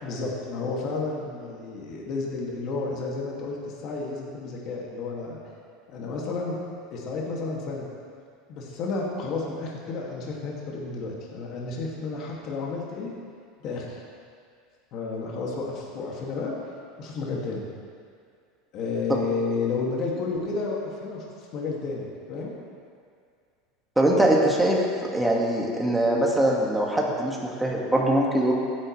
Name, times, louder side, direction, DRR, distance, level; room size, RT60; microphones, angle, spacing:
voice 1, 0.0-5.4 5.9-6.6 6.9-7.9 8.5-13.1 13.6-14.0 14.9-16.5 17.0-17.6 18.7-21.2 21.5-22.5, left 3 dB, 50° left, -3 dB, 2.2 m, -31 dB
voice 2, 24.0-24.8 25.1-28.5, right 1 dB, 5° right, -2 dB, 1.8 m, -22 dB
16.0 x 9.7 x 3.3 m, 2.2 s
supercardioid pair, 135°, 0 cm